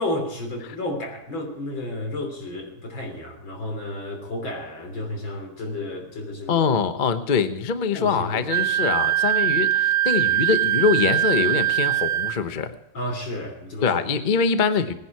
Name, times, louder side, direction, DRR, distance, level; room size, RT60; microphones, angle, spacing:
voice 1, 0.0-6.6 7.9-8.8 12.9-13.9, left 1 dB, 70° left, 3 dB, 4.0 m, -32 dB
voice 2, 6.5-12.7 13.8-14.9, left 5 dB, 45° left, 10 dB, 0.6 m, -23 dB
Wind instrument woodwind instrument, 8.5-12.4, right 12 dB, 85° right, 1.5 m, -22 dB
19.0 x 10.5 x 4.7 m, 0.87 s
omnidirectional pair, 2.3 m